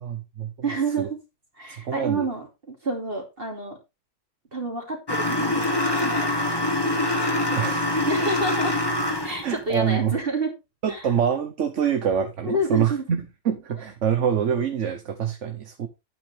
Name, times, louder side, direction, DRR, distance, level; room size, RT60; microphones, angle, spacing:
voice 1, 0.0-0.5 1.0-1.1 1.8-2.2 7.5-7.9 8.2-8.3 9.4-10.1 10.8-15.9, right 8 dB, 65° right, 1.4 m, -25 dB
voice 2, 0.6-1.2 1.5-3.8 4.5-5.7 6.0-6.9 8.1-8.8 9.2-10.5 10.9-11.1 12.4-13.0, right 2 dB, 45° right, 3.0 m, -29 dB
sound 1, 5.1-9.5, left 1 dB, 20° left, 1.8 m, -24 dB
10.5 x 9.2 x 3.4 m
omnidirectional pair, 1.3 m